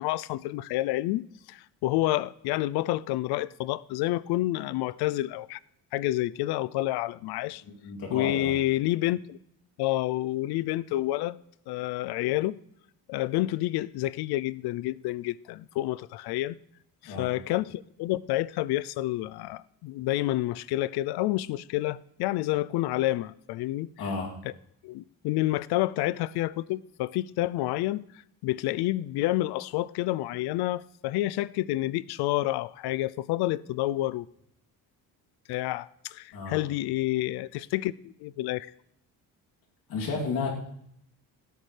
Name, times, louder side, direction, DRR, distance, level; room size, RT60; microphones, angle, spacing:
voice 1, 0.0-5.6 5.9-7.6 8.1-9.4 9.8-11.4 11.7-12.6 13.1-16.6 17.0-23.9 24.4-24.5 24.8-28.0 28.4-34.3 35.5-38.7, left 16 dB, 85° left, 0.5 m, -29 dB
voice 2, 7.6-8.5 17.0-17.3 24.0-24.3 36.3-36.6 39.9-40.5, left 4 dB, 65° left, 3.0 m, -32 dB
17.0 x 13.0 x 3.3 m
cardioid pair, 140°, 37 cm